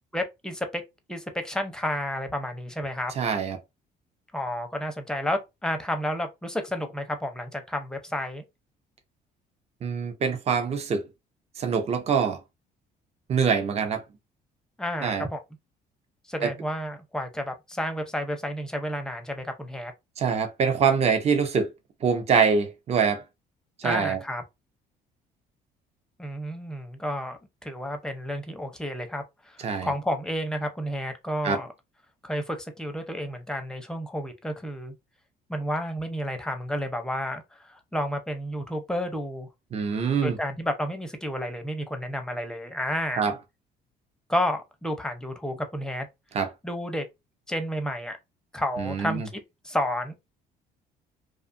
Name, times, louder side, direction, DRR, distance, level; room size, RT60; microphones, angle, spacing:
voice 1, 0.1-0.8 1.1-3.1 4.3-8.4 14.8-15.4 16.3-19.9 23.8-24.4 26.2-31.7 32.2-34.9 35.5-39.5 40.2-43.3 44.3-46.1 46.6-47.0 47.5-48.2 48.5-49.4 49.6-50.1, equal, 5° left, 0.6 m, -31 dB
voice 2, 3.2-3.6 9.8-11.0 11.6-12.4 13.3-14.0 15.0-15.3 20.2-21.7 22.0-23.2 23.8-24.2 29.6-29.9 31.4-31.6 39.7-40.4 43.2-43.3 46.3-46.5 49.0-49.3, right 6 dB, 40° right, 0.7 m, -24 dB
2.6 x 2.3 x 2.6 m
cardioid pair, 110°, 17 cm